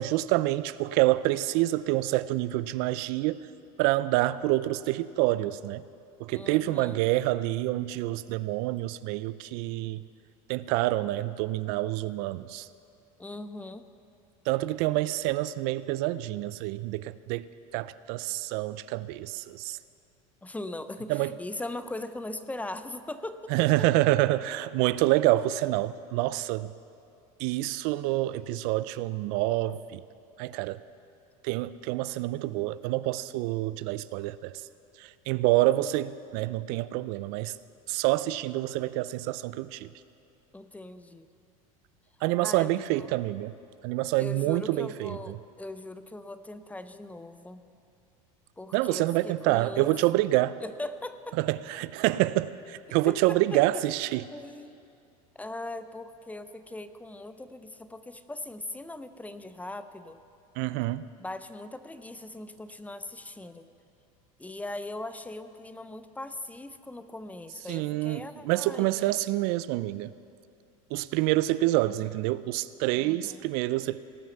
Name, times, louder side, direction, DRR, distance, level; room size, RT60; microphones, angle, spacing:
voice 1, 0.0-3.5 3.8-5.8 6.2-10.0 10.5-12.7 14.5-17.5 17.7-19.8 21.1-21.3 23.5-26.7 27.4-30.0 30.4-30.8 31.4-34.6 35.0-37.6 37.9-39.9 42.2-43.5 43.8-45.3 48.7-50.6 51.4-54.2 60.6-61.1 67.7-70.1 70.9-74.0, right 17 dB, 60° right, 16 dB, 0.4 m, -27 dB
voice 2, 6.3-7.0 13.2-13.9 20.4-23.9 40.5-41.3 42.4-43.2 44.2-47.6 48.6-49.9 50.6-51.4 53.1-53.8 54.3-54.8 55.4-60.2 61.2-63.7 64.4-69.2 73.0-73.5, left 2 dB, 10° left, 11 dB, 0.5 m, -40 dB
18.0 x 6.3 x 7.0 m, 2.6 s
supercardioid pair, 110°, 18 cm